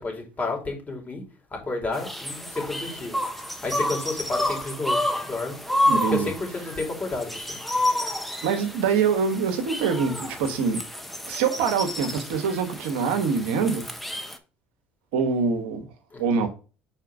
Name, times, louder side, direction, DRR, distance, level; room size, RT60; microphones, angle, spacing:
voice 1, 0.0-1.2 1.5-3.2 3.6-5.6 6.1-7.6 16.1-16.5, left 3 dB, 30° left, 3.0 m, -31 dB
sound 1, 1.9-14.4, left 1 dB, ahead, 1.1 m, -30 dB
voice 2, 5.9-6.3 8.4-10.8 11.2-13.9 15.1-15.8 16.2-16.5, right 6 dB, 80° right, 1.2 m, -24 dB
5.7 x 4.4 x 4.7 m
hypercardioid pair, 70°, 6 cm